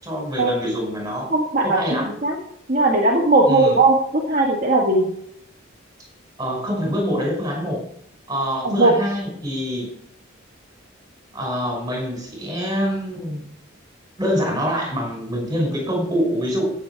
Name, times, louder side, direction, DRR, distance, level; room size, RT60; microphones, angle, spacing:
voice 1, 0.0-1.3 1.6-2.1 3.5-3.8 6.4-7.8 8.3-9.9 11.3-13.4 14.2-16.7, equal, 20° right, 0 dB, 5.4 m, -25 dB
voice 2, 1.3-1.8 2.2-2.4 2.7-5.0 8.6-8.9, right 2 dB, 40° right, -1 dB, 1.8 m, -18 dB
15.5 x 7.4 x 4.7 m, 0.70 s
head